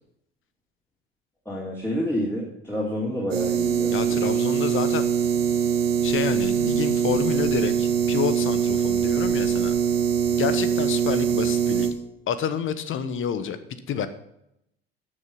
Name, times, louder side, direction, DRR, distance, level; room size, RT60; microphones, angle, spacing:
voice 1, 1.4-4.2, equal, 10° left, -5 dB, 3.4 m, -29 dB
sound 1, 3.3-11.9, right 8 dB, 75° right, 1.7 m, -23 dB
voice 2, 3.9-5.1 6.0-9.8 10.3-11.9 12.3-13.6 13.9-14.1, left 8 dB, 40° left, 12 dB, 1.1 m, -28 dB
13.0 x 6.7 x 5.3 m, 0.78 s
figure-of-eight pair, 60°, 30 cm